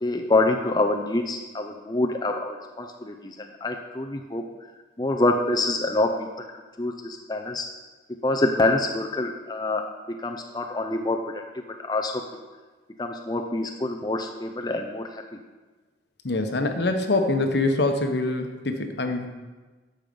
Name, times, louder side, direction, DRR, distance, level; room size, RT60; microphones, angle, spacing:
voice 1, 0.0-4.5 5.0-6.5 6.8-7.7 8.2-12.2 13.0-15.2, left 2 dB, 20° left, 3 dB, 0.5 m, -26 dB
voice 2, 16.2-19.3, left 2 dB, 65° left, 6 dB, 1.0 m, -24 dB
12.5 x 5.5 x 5.3 m, 1.3 s
head